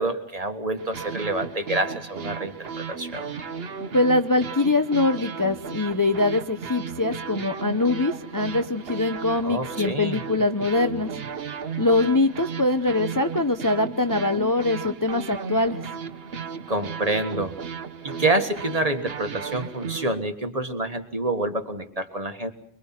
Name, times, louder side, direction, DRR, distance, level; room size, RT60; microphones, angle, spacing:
voice 1, 0.0-3.3 9.4-10.2 16.7-17.5 18.0-22.5, right 2 dB, 30° right, 8 dB, 1.7 m, -27 dB
sound 1, 0.8-20.1, right 6 dB, 55° right, 1.3 m, -35 dB
voice 2, 3.9-11.1 11.8-15.8, left 2 dB, 20° left, 8 dB, 0.8 m, -23 dB
24.0 x 24.0 x 6.0 m, 0.66 s
omnidirectional pair, 1.2 m